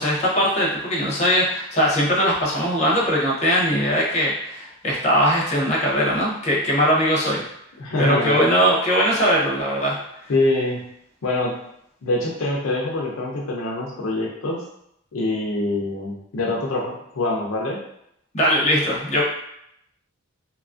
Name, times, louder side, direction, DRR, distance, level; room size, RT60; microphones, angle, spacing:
voice 1, 0.0-7.4 8.0-10.0 18.3-19.2, equal, 30° left, -4 dB, 0.6 m, -20 dB
voice 2, 7.8-8.4 10.3-10.8 11.2-11.5 12.0-14.6 15.1-17.8, left 2 dB, 70° left, -2 dB, 0.4 m, -24 dB
2.9 x 2.4 x 2.4 m, 0.75 s
head